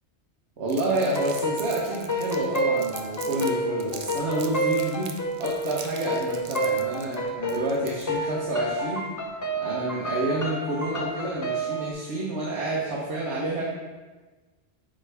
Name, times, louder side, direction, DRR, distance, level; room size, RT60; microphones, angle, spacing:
voice 1, 0.6-5.1 5.4-9.1 9.6-13.6, right 2 dB, 70° right, -4 dB, 1.2 m, -29 dB
Crumpling crinkling, 0.7-3.5 3.8-8.2, right 6 dB, 50° right, 0.5 m, -42 dB
sound 1, 0.9-11.9, right 1 dB, 20° left, 0.5 m, -29 dB
8.9 x 3.7 x 3.3 m, 1.3 s
omnidirectional pair, 1.2 m